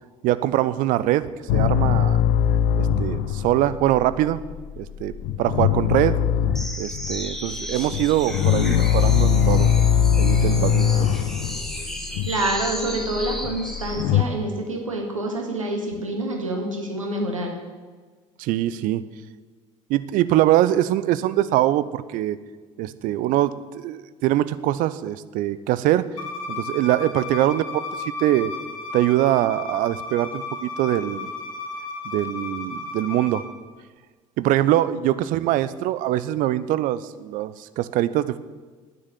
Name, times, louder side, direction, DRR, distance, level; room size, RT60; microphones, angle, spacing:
voice 1, 0.2-1.3 1.5-2.2 2.8-4.4 4.8-6.2 6.8-9.7 10.2-11.2 18.4-19.0 19.9-22.4 22.8-26.1 26.5-28.5 28.9-31.3 32.0-33.5 34.4-38.4, right 14 dB, 55° right, 15 dB, 0.7 m, -23 dB
sound 1, 1.5-14.2, left 8 dB, 60° left, 0.7 m, -21 dB
sound 2, 6.5-14.1, equal, ahead, 2.5 m, -34 dB
voice 2, 12.3-17.5, right 2 dB, 85° right, 2 dB, 1.9 m, -27 dB
Bowed string instrument, 26.2-33.4, left 4 dB, 85° left, 1.4 m, -34 dB
9.7 x 9.6 x 9.1 m, 1.4 s
figure-of-eight pair, 55°, 16 cm